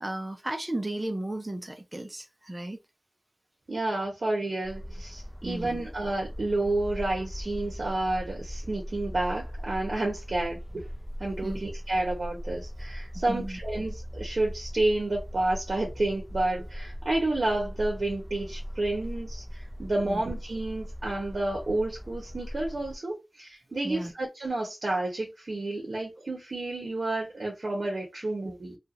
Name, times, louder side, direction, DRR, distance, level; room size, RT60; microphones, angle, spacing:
voice 1, 0.0-2.8 5.4-5.9 11.4-11.6 13.1-13.6 20.0-20.2 23.8-24.1, right 1 dB, 25° right, 0.6 m, -34 dB
voice 2, 3.7-10.9 11.2-28.8, right 2 dB, 75° right, 0.9 m, -30 dB
sound 1, 4.6-23.0, equal, 20° left, 0.7 m, -39 dB
2.8 x 2.3 x 2.5 m
wide cardioid pair, 70°, 0 cm